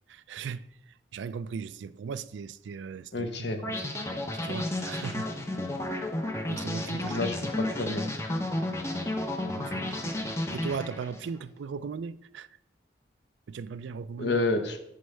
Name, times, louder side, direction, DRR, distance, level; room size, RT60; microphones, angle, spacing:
voice 1, 0.1-0.7 1.1-3.3 3.6-5.3 6.5-7.3 9.5-12.5 13.5-14.4, right 6 dB, 90° right, 0.4 m, -38 dB
voice 2, 3.1-3.6 7.1-8.0 14.2-14.8, left 2 dB, 75° left, 1.0 m, -29 dB
sound 1, 3.6-11.3, left 1 dB, 15° left, 0.7 m, -32 dB
9.4 x 5.3 x 3.4 m
head